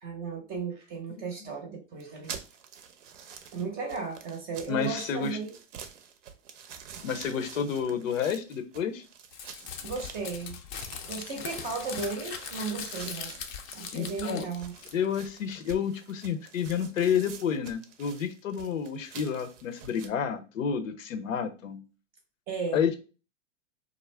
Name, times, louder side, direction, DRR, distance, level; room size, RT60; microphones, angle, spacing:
voice 1, 0.0-2.4 3.5-5.5 9.8-10.6 11.1-13.4 13.7-14.7 22.5-22.8, right 4 dB, 25° right, 0.6 m, -35 dB
voice 2, 1.1-1.5 4.7-5.4 7.0-9.0 13.9-14.4 14.9-21.8 22.7-22.9, left 7 dB, 80° left, 0.7 m, -30 dB
sound 1, 2.0-20.1, right 7 dB, 70° right, 0.6 m, -47 dB
Crumpling crinkling, 9.3-15.2, left 7 dB, 40° left, 0.5 m, -40 dB
2.4 x 2.0 x 3.2 m
hypercardioid pair, 130°, 38 cm